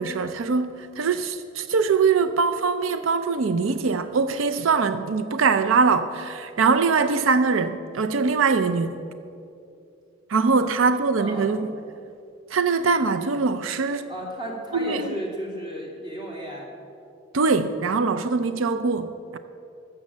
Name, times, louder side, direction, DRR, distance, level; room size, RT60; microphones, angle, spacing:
voice 1, 0.0-9.0 10.3-11.7 12.5-14.1 14.7-15.1 17.3-19.4, right 4 dB, 90° right, 0.5 m, -22 dB
voice 2, 10.6-11.5 14.1-16.7, equal, 25° right, 2.7 m, -34 dB
13.5 x 6.7 x 8.4 m
head